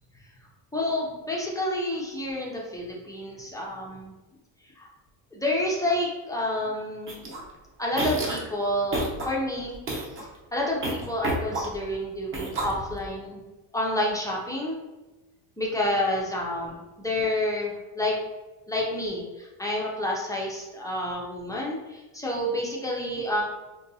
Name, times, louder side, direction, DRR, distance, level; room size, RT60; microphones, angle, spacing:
voice 1, 0.7-4.1 4.8-4.9 5.3-7.3 7.8-9.8 10.5-13.4 13.7-14.8 15.6-18.2 18.7-23.4, left 1 dB, 10° left, -3 dB, 0.3 m, -29 dB
sound 1, 7.1-7.4 7.9-8.5 8.9-9.3 9.7-10.2 10.8-11.9 12.3-13.1, right 1 dB, 30° right, 0.7 m, -30 dB
3.7 x 2.2 x 2.6 m, 1.1 s
cardioid pair, 135°, 44 cm